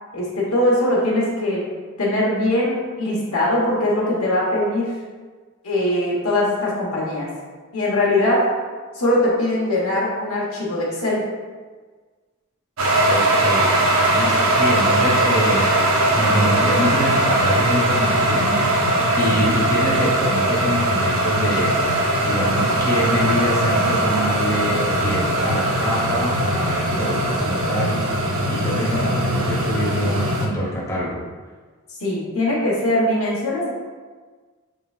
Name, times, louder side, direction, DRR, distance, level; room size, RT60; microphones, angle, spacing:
voice 1, 0.1-1.6 2.0-4.9 5.6-7.3 7.7-8.5 8.9-11.3 19.3-19.6 32.0-33.7, left 1 dB, 75° left, -5 dB, 1.1 m, -21 dB
sound 1, 12.8-30.5, right 1 dB, 70° right, 0.7 m, -20 dB
voice 2, 13.1-13.7 14.0-15.7 16.2-21.7 22.2-31.3, equal, 15° left, -7 dB, 0.8 m, -25 dB
4.2 x 3.7 x 2.4 m, 1.4 s
head